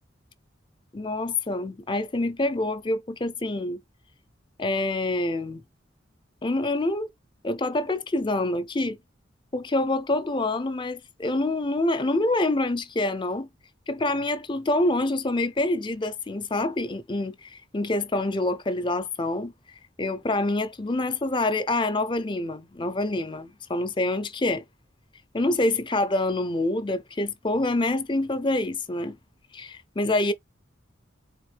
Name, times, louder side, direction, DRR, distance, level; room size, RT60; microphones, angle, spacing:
voice 1, 0.9-3.8 4.6-5.6 6.4-7.1 7.4-9.0 9.5-13.5 13.9-19.5 20.0-24.6 25.3-29.2 29.5-30.3, left 2 dB, 25° left, 0.5 m, -26 dB
3.9 x 3.5 x 3.2 m
head